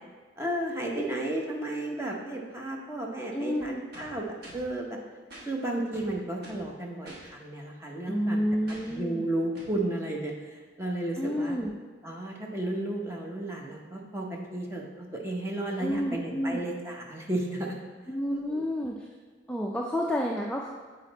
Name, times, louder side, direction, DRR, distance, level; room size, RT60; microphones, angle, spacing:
voice 1, 0.4-5.0 5.5-8.4 8.8-11.6 12.0-17.7 18.3-18.6, right 1 dB, 15° right, -1 dB, 0.8 m, -33 dB
voice 2, 3.3-3.8 8.1-9.2 11.2-11.7 15.8-16.6 18.1-19.1 19.5-20.7, equal, 5° left, -2 dB, 0.3 m, -30 dB
sound 1, 3.9-4.7 5.3-5.5 5.9-6.7 7.0-7.3 8.7-9.0 9.5-9.8, right 1 dB, 55° right, 1.4 m, -47 dB
7.3 x 4.0 x 4.0 m, 1.4 s
head